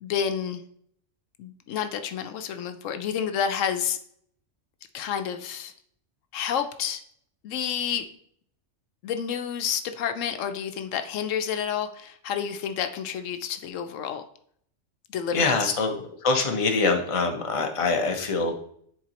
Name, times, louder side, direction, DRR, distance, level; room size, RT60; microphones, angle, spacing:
voice 1, 0.0-0.6 1.4-4.0 4.9-5.7 6.3-7.0 7.4-8.1 9.0-14.2 15.1-15.7, left 8 dB, 90° left, 8 dB, 1.0 m, -29 dB
voice 2, 15.3-15.9 16.2-18.6, left 3 dB, 30° left, 3 dB, 0.8 m, -24 dB
10.5 x 4.0 x 2.9 m, 0.65 s
omnidirectional pair, 1.3 m